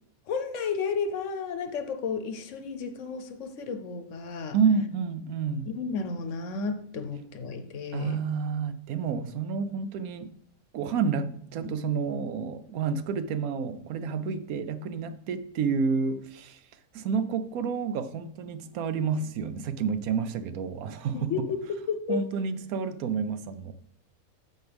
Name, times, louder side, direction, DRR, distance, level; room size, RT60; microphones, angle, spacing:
voice 1, 0.3-4.6 5.7-8.2 21.1-21.6 21.9-22.2, left 5 dB, 65° left, 1.0 m, -32 dB
voice 2, 4.5-5.7 7.9-10.3 10.7-16.6 16.9-21.3 22.1-23.7, right 6 dB, 75° right, 1.1 m, -29 dB
13.0 x 4.5 x 3.4 m
omnidirectional pair, 1.5 m